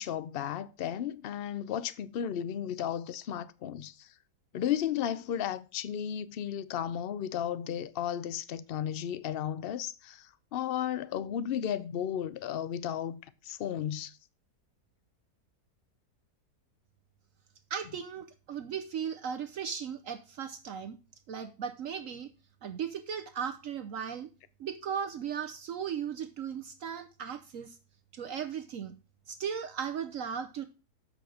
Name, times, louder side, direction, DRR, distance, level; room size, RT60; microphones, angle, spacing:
voice 1, 0.0-3.9 4.5-10.3 10.5-14.1, left 9 dB, 70° left, 0.5 m, -34 dB
voice 2, 17.7-21.0 21.3-22.3 22.6-24.3 24.6-27.7 28.1-28.9 29.3-30.6, right 7 dB, 60° right, 1.0 m, -37 dB
7.5 x 6.2 x 4.9 m
omnidirectional pair, 1.7 m